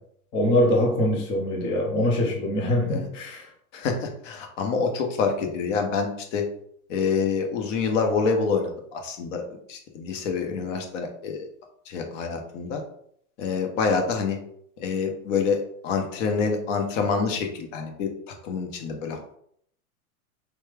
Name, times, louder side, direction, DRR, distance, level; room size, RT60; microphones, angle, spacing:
voice 1, 0.3-3.5, left 1 dB, 15° left, 0 dB, 0.3 m, -23 dB
voice 2, 3.7-6.4 6.9-9.4 9.7-11.5 11.9-12.8 13.4-14.4 14.8-19.4, left 5 dB, 55° left, 4 dB, 1.0 m, -27 dB
3.4 x 3.1 x 3.3 m, 0.67 s
hypercardioid pair, 120°, 45 cm